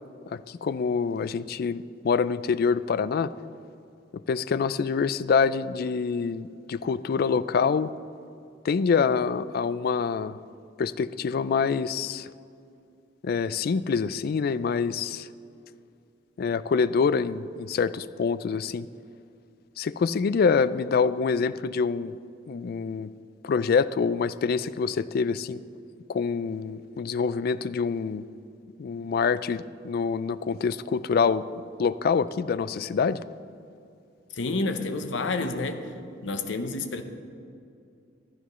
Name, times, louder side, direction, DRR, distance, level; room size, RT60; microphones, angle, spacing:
voice 1, 0.3-3.3 4.3-7.9 8.6-10.4 10.8-12.3 13.2-15.3 16.4-18.9 19.8-22.1 22.5-23.1 23.4-25.6 26.1-28.2 28.8-31.4 31.8-33.2, left 5 dB, 55° left, 15 dB, 0.3 m, -26 dB
voice 2, 34.3-35.8 36.2-37.0, left 3 dB, 75° left, 8 dB, 0.8 m, -29 dB
15.5 x 12.5 x 3.1 m, 2.5 s
head